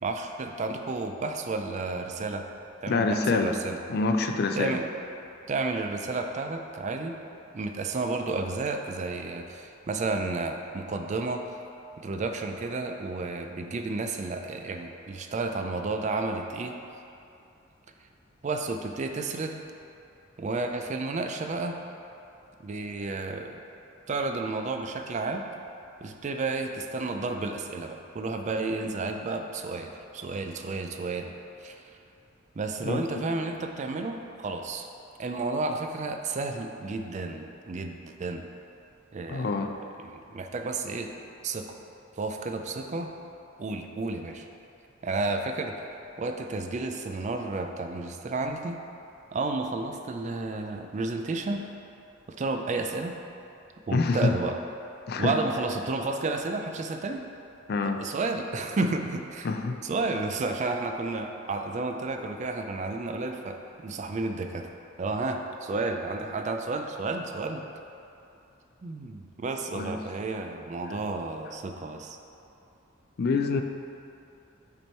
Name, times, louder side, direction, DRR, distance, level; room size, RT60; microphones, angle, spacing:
voice 1, 0.0-2.5 2.8-3.8 4.5-4.9 5.5-7.2 7.5-11.6 12.0-16.8 18.4-19.6 20.4-21.8 22.6-23.6 24.1-25.4 26.0-31.3 31.6-31.8 32.6-34.9 35.2-38.4 39.1-39.7 40.0-41.1 41.4-41.8 42.2-43.1 43.6-44.5 45.0-45.9 46.2-48.8 49.3-51.7 52.3-53.1 53.9-54.6 55.2-57.2 57.8-59.5 59.8-64.7 65.0-67.6 68.8-72.2, right 3 dB, 35° right, 5 dB, 0.4 m, -31 dB
voice 2, 2.9-3.6 3.9-4.8 32.8-33.0 39.3-39.7 53.9-54.3 55.1-55.3 57.7-58.0 59.4-59.8 69.7-69.9 73.2-73.6, left 3 dB, 50° left, 6 dB, 0.4 m, -26 dB
6.0 x 4.4 x 4.4 m, 2.7 s
head